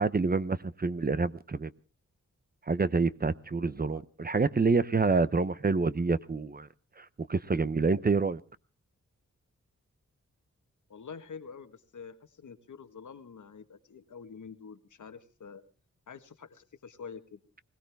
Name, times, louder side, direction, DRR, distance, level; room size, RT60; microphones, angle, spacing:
voice 1, 0.0-1.7 2.7-6.7 7.0-8.4, right 4 dB, 30° right, 0.7 m, -27 dB
voice 2, 3.6-4.0 10.9-15.6 16.1-17.4, left 6 dB, 80° left, 1.5 m, -47 dB
21.0 x 17.5 x 3.5 m
wide cardioid pair, 90°, 30 cm